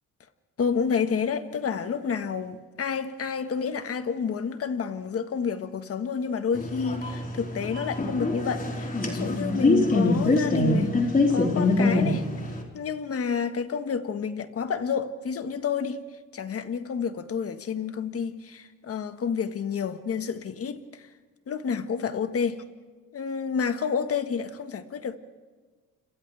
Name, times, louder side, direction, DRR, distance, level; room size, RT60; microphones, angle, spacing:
voice 1, 0.6-11.0 11.3-12.3 12.7-16.0 16.3-21.1 21.5-22.6 23.1-25.2, left 6 dB, 50° left, 9 dB, 1.6 m, -29 dB
sound 1, 6.5-12.6, left 2 dB, 30° left, 4.5 m, -24 dB
30.0 x 27.0 x 3.5 m, 1.4 s
cardioid pair, 90°, 30 cm